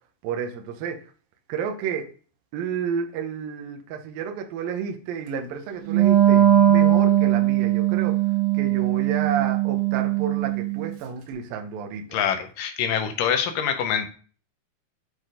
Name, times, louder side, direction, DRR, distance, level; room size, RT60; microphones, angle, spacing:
voice 1, 0.2-1.0 1.5-2.1 2.5-8.2 8.5-12.2, right 7 dB, 70° right, 4 dB, 2.6 m, -31 dB
Wind instrument woodwind instrument, 5.9-10.9, right 12 dB, 90° right, 3.5 m, -20 dB
voice 2, 12.1-14.1, left 8 dB, 75° left, 7 dB, 2.1 m, -25 dB
8.0 x 4.7 x 5.0 m, 0.40 s
omnidirectional pair, 4.5 m